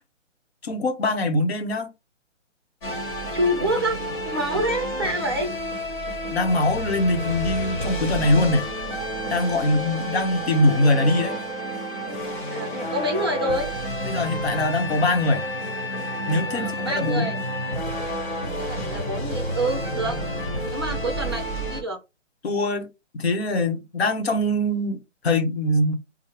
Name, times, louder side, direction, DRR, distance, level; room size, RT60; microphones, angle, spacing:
voice 1, 0.6-1.9 6.3-8.6 9.3-11.4 14.0-15.4 16.3-17.3 22.4-22.9 23.1-26.0, left 1 dB, 55° left, 0.9 m, -22 dB
sound 1, 2.8-21.8, equal, 40° left, 1.3 m, -30 dB
voice 2, 3.3-5.5 12.5-13.7 16.5-17.4 18.6-20.2 20.6-22.0, right 1 dB, 20° right, 0.5 m, -27 dB
4.4 x 2.1 x 3.1 m
hypercardioid pair, 160°, 37 cm